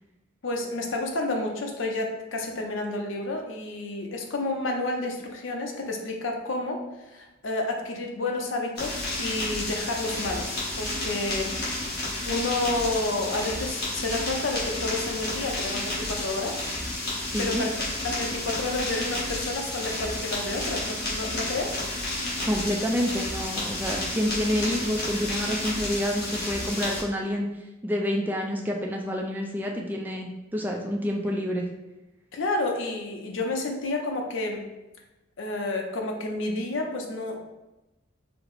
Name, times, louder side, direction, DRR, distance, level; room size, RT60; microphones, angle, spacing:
voice 1, 0.4-12.0 12.3-16.6 17.4-17.7 18.0-21.8 32.3-34.6 35.4-37.4, left 2 dB, 85° left, 2 dB, 0.6 m, -30 dB
sound 1, 8.8-27.0, left 1 dB, 55° left, 1.3 m, -31 dB
voice 2, 17.3-17.6 22.4-27.5 27.8-31.7, equal, 10° right, 0 dB, 0.3 m, -28 dB
4.3 x 2.0 x 3.9 m, 1.0 s
head